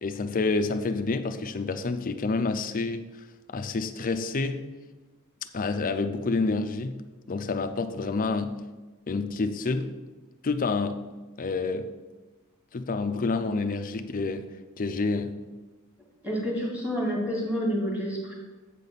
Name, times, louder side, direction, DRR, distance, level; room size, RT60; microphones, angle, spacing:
voice 1, 0.0-3.1 3.5-4.6 5.5-7.0 7.3-8.6 9.1-9.9 10.4-11.0 11.4-11.9 12.7-14.5 14.8-15.4, left 3 dB, 40° left, 8 dB, 0.5 m, -28 dB
voice 2, 16.2-18.3, equal, 5° right, -3 dB, 2.1 m, -28 dB
8.2 x 4.1 x 6.8 m, 1.2 s
head